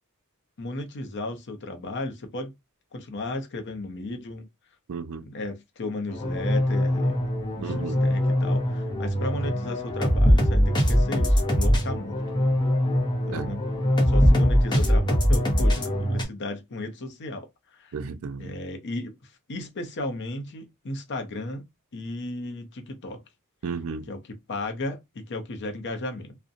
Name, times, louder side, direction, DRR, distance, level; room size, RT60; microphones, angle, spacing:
voice 1, 0.6-2.5 2.9-4.5 5.2-7.2 7.5-12.2 13.2-18.0 18.4-21.7 21.9-23.2 24.1-26.4, left 2 dB, 55° left, 0.6 m, -35 dB
voice 2, 4.9-5.2 7.6-8.0 13.3-13.6 17.9-18.5 23.6-24.1, right 5 dB, 70° right, 0.4 m, -33 dB
sound 1, 6.1-16.2, equal, 20° left, 0.7 m, -22 dB
2.6 x 2.1 x 2.5 m
head